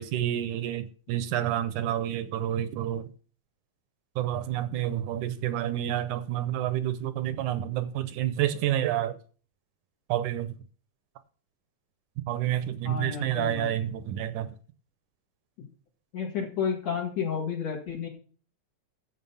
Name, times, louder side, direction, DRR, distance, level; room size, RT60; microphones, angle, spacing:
voice 1, 0.0-3.1 4.2-9.2 10.1-10.6 12.3-14.6, right 12 dB, 75° right, 2.1 m, -29 dB
voice 2, 12.8-13.7 15.6-15.7 16.1-18.1, left 7 dB, 55° left, 3.0 m, -31 dB
11.0 x 7.7 x 5.6 m
omnidirectional pair, 3.7 m